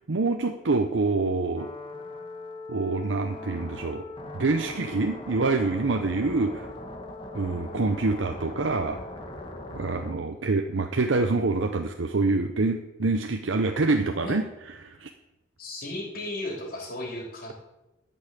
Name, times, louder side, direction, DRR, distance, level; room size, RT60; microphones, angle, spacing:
voice 1, 0.1-1.7 2.7-4.0 4.3-6.7 7.3-9.0 9.7-14.5 14.8-15.1, right 3 dB, 80° right, 5 dB, 0.7 m, -26 dB
sound 1, 1.6-10.1, left 2 dB, 30° left, 1.3 m, -40 dB
voice 2, 15.6-17.5, left 1 dB, 50° left, -1 dB, 3.3 m, -35 dB
12.0 x 5.6 x 8.2 m, 0.99 s
head